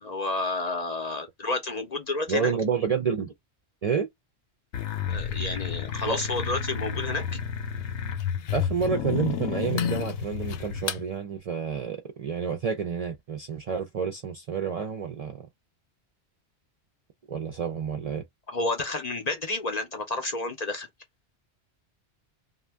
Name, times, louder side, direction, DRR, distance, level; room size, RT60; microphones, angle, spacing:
voice 1, 0.0-2.5 5.1-7.2 18.5-20.9, left 2 dB, 50° left, 0.6 m, -30 dB
voice 2, 2.3-3.3 3.8-4.1 6.1-6.2 8.5-15.4 17.3-18.2, right 6 dB, 50° right, 0.4 m, -29 dB
sound 1, 4.7-11.0, left 7 dB, 90° left, 0.9 m, -30 dB
2.5 x 2.2 x 3.3 m
omnidirectional pair, 1.1 m